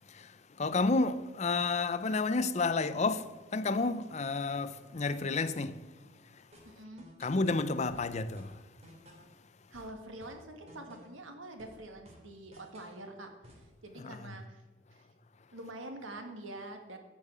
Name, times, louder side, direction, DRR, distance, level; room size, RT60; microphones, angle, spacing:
voice 1, 0.1-5.8 6.3-6.4 7.2-8.6 14.0-14.3, left 3 dB, 35° left, 0.5 m, -31 dB
sound 1, 6.5-7.5 7.9-9.4 9.7-11.3 11.6-13.0 13.4-13.7, equal, 30° right, 2.8 m, -56 dB
voice 2, 6.7-7.1 9.7-14.6 14.9-15.1 15.5-17.0, right 1 dB, 85° right, 1.8 m, -46 dB
13.0 x 5.6 x 8.0 m
head